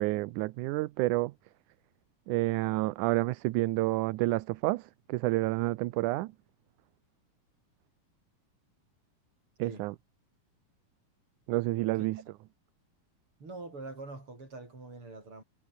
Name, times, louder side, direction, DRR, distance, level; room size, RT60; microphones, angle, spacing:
voice 1, 0.0-1.3 2.3-6.3 9.6-10.0 11.5-12.2, right 19 dB, 80° right, 2.1 m, -29 dB
voice 2, 12.0-12.3 13.4-15.4, right 3 dB, 40° right, 8.2 m, -44 dB
omnidirectional pair, 3.7 m